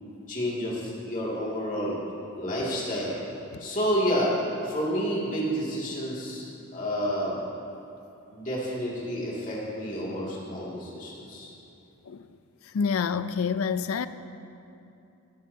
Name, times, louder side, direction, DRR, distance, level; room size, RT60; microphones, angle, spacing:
voice 1, 0.3-2.0 2.4-3.1 3.6-4.3 4.6-6.4 6.7-7.4 8.3-11.5, equal, 40° left, -6 dB, 2.3 m, -29 dB
voice 2, 12.7-14.1, left 6 dB, 80° left, 13 dB, 0.4 m, -27 dB
17.5 x 13.0 x 2.8 m, 2.7 s
head